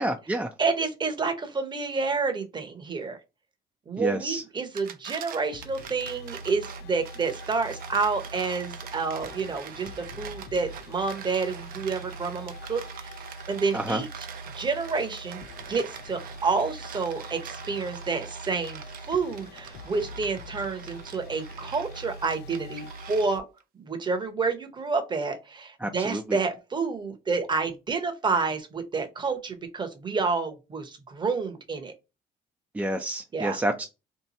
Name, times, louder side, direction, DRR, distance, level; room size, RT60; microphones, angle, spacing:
voice 1, 0.0-0.5 4.0-4.4 13.7-14.0 25.8-26.4 32.7-33.9, right 1 dB, 10° right, 0.4 m, -29 dB
voice 2, 0.6-3.2 3.9-13.2 13.5-14.1 14.5-23.5 23.7-31.9 33.3-33.6, right 4 dB, 25° right, 0.8 m, -29 dB
sound 1, 4.6-23.6, right 9 dB, 60° right, 0.5 m, -44 dB
sound 2, 5.5-23.4, equal, 75° left, 0.4 m, -43 dB
2.8 x 2.2 x 4.0 m
cardioid pair, 110°, 17 cm